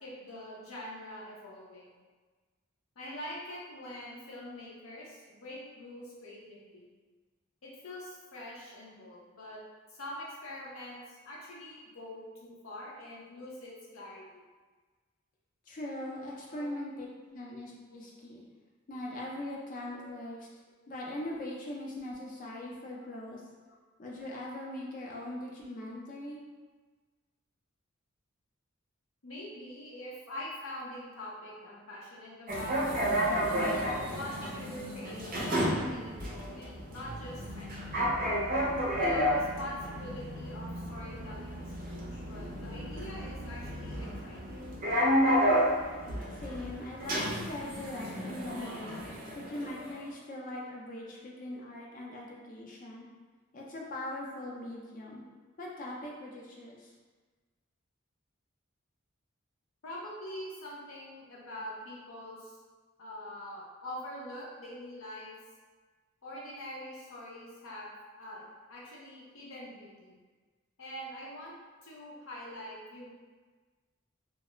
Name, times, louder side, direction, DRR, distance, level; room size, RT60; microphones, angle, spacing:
voice 1, 0.0-1.9 3.0-6.9 7.6-9.6 9.9-14.4 16.5-16.7 17.9-18.0 20.0-20.1 23.6-23.7 29.2-32.8 33.6-37.7 38.9-41.5 41.8-44.6 51.0-51.1 59.8-62.5 63.0-65.4 66.2-68.4 68.7-70.2 70.8-71.6 71.8-73.1, left 1 dB, 80° left, -5 dB, 0.7 m, -44 dB
voice 2, 15.7-17.1 17.3-18.4 18.9-20.4 20.9-23.4 24.0-26.4 46.4-49.0 49.3-53.1 53.5-55.2 55.6-56.9, left 1 dB, 40° left, -3 dB, 0.5 m, -41 dB
sound 1, 32.5-50.0, equal, 45° right, 0.4 m, -32 dB
2.3 x 2.0 x 2.9 m, 1.4 s
head